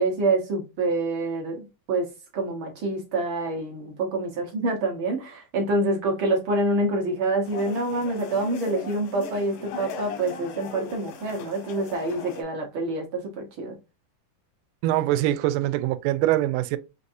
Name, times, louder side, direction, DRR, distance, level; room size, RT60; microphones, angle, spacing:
voice 1, 0.0-13.8, right 2 dB, 65° right, 1.2 m, -26 dB
sound 1, 7.4-12.4, left 6 dB, 90° left, 2.6 m, -39 dB
voice 2, 14.8-16.8, right 14 dB, 85° right, 2.1 m, -23 dB
6.4 x 2.6 x 2.6 m
omnidirectional pair, 3.7 m